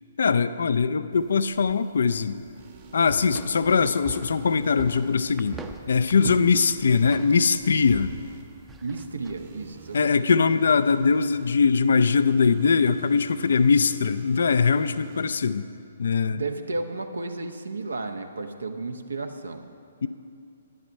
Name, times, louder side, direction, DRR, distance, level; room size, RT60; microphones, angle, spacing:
voice 1, 0.2-2.4 2.9-5.6 5.9-8.1 9.9-15.6 16.0-16.4 20.0-20.1, left 5 dB, 60° left, 13 dB, 0.4 m, -21 dB
sound 1, 1.1-10.0, right 5 dB, 10° right, 0.6 m, -44 dB
sound 2, 2.6-5.2 6.1-8.4 9.3-11.5 12.2-15.3, right 6 dB, 50° right, 1.3 m, -47 dB
voice 2, 8.8-10.2 16.3-19.7, right 3 dB, 75° right, 7 dB, 0.9 m, -33 dB
11.0 x 10.5 x 5.5 m, 2.5 s
figure-of-eight pair, 125°, 0 cm